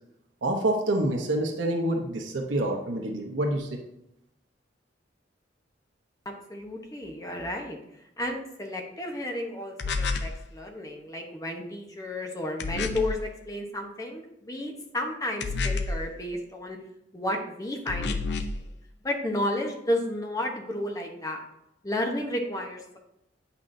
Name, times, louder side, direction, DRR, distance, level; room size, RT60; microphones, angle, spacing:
voice 1, 0.4-3.8, right 1 dB, 80° right, 2 dB, 0.9 m, -27 dB
voice 2, 6.5-7.8 8.2-16.8 17.1-18.4 19.0-21.4 21.8-23.0, left 1 dB, 20° left, 2 dB, 0.9 m, -32 dB
sound 1, 9.8-10.4 12.6-13.2 15.4-16.1 17.9-18.6, left 3 dB, 65° left, 0.6 m, -29 dB
8.7 x 5.8 x 2.6 m, 0.81 s
head